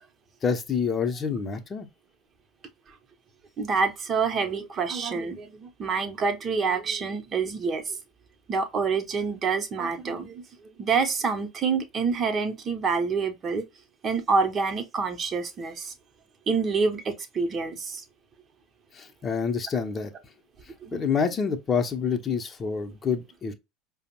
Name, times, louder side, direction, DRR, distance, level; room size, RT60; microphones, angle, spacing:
voice 1, 0.4-1.9 18.9-20.1 20.9-23.5, left 6 dB, 30° left, 0.7 m, -27 dB
voice 2, 3.6-8.0 8.5-10.4 10.8-13.6 14.0-15.9 16.5-18.0 20.8-21.0, right 5 dB, 35° right, 0.7 m, -27 dB
4.9 x 2.0 x 2.9 m
hypercardioid pair, 75°, 0 cm